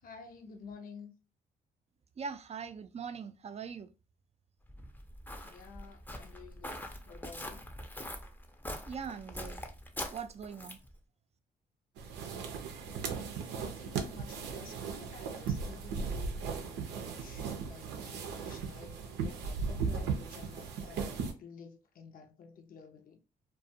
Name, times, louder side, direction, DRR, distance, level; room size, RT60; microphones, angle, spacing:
voice 1, 0.0-1.1 5.4-7.6 13.6-23.2, left 5 dB, 55° left, 0.6 m, -52 dB
voice 2, 2.2-3.9 8.9-9.6 10.1-10.8, right 6 dB, 40° right, 0.4 m, -41 dB
Walk footsteps, 4.7-10.9, left 1 dB, 10° left, 0.6 m, -43 dB
sound 1, 12.0-21.3, right 5 dB, 85° right, 0.5 m, -37 dB
2.4 x 2.2 x 2.7 m
supercardioid pair, 65°, 17 cm